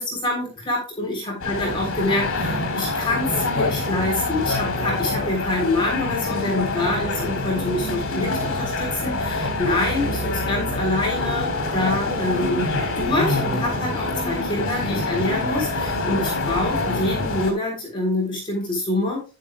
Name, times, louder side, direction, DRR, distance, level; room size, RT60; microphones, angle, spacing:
voice 1, 0.0-12.7 13.0-19.2, left 2 dB, 25° left, -1 dB, 3.7 m, -26 dB
sound 1, 1.4-17.5, left 2 dB, 65° left, 3.3 m, -26 dB
11.0 x 10.5 x 2.4 m, 0.30 s
head